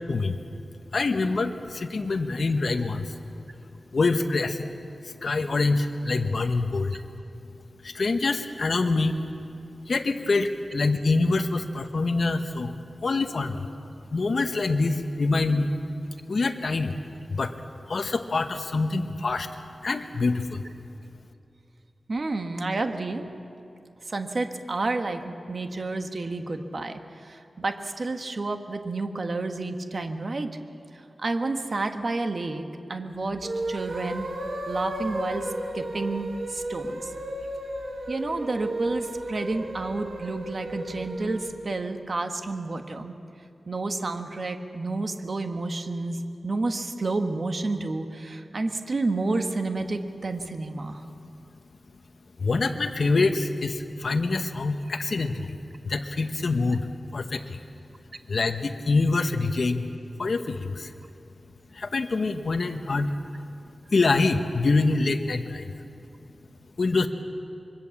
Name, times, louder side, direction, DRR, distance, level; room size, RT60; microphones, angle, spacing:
voice 1, 0.1-0.4 0.9-3.1 3.9-4.8 5.0-7.0 7.8-9.2 9.8-12.8 13.0-13.7 14.1-15.8 16.3-17.0 17.3-17.6 17.9-19.5 19.8-20.7 52.4-55.6 55.8-57.6 58.3-59.8 60.2-60.9 61.7-63.1 63.9-65.7 66.8-67.1, left 3 dB, 60° left, 5 dB, 1.1 m, -25 dB
voice 2, 22.1-23.2 24.1-30.6 31.2-32.6 32.9-34.3 34.7-37.1 38.1-43.1 43.7-51.0, right 3 dB, 50° right, 6 dB, 1.5 m, -30 dB
sound 1, 33.3-41.5, right 1 dB, 85° right, 3.1 m, -34 dB
26.0 x 23.0 x 7.2 m, 2.6 s
wide cardioid pair, 110°, 0 cm